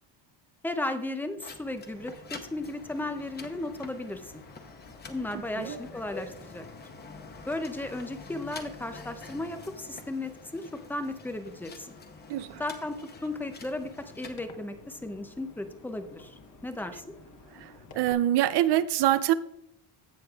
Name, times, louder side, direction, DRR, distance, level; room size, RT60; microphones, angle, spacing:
voice 1, 0.6-4.3 5.1-6.6 7.5-11.9 12.6-17.0, left 2 dB, 5° left, 0.3 m, -35 dB
sound 1, 1.4-14.4, left 4 dB, 20° left, 0.7 m, -47 dB
sound 2, 1.9-18.1, left 3 dB, 35° left, 1.1 m, -53 dB
voice 2, 12.3-12.6 17.5-19.3, right 13 dB, 55° right, 0.6 m, -25 dB
16.0 x 6.4 x 2.3 m
cardioid pair, 160°, 49 cm